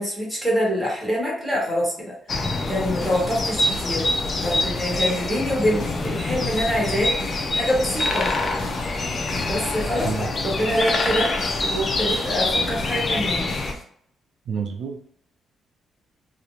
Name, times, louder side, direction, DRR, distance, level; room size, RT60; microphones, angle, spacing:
voice 1, 0.0-2.1 2.7-4.1 4.4-7.3 7.5-8.3 9.3-11.3 11.6-13.5, equal, ahead, -5 dB, 1.1 m, -25 dB
sound 1, 2.3-13.7, left 2 dB, 35° left, 0.4 m, -25 dB
sound 2, 2.7-13.8, equal, 65° left, 0.9 m, -39 dB
voice 2, 14.5-15.0, right 6 dB, 65° right, 2 dB, 0.4 m, -28 dB
2.5 x 2.0 x 2.9 m, 0.67 s
cardioid pair, 135°, 0 cm